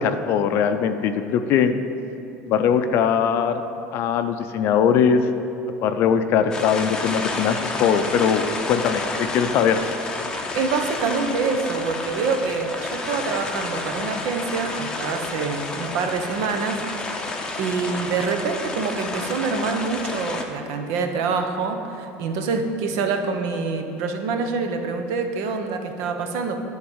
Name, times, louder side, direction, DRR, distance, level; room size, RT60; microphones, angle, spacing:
voice 1, 0.0-1.7 2.5-3.6 3.9-5.3 5.8-9.9, left 7 dB, 50° left, 9 dB, 0.5 m, -21 dB
sound 1, 6.5-20.4, left 3 dB, 15° left, 0.7 m, -30 dB
voice 2, 10.5-16.8 17.6-26.6, right 4 dB, 70° right, 6 dB, 0.9 m, -26 dB
10.0 x 4.0 x 7.1 m, 2.9 s
cardioid pair, 150°, 5 cm